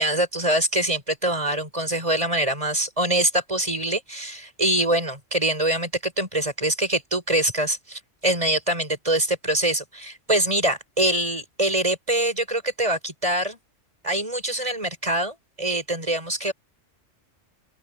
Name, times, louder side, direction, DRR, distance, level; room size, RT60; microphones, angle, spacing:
voice 1, 0.0-13.6 14.0-16.5, right 1 dB, 25° right, 6.3 m, -24 dB
open air
omnidirectional pair, 1.2 m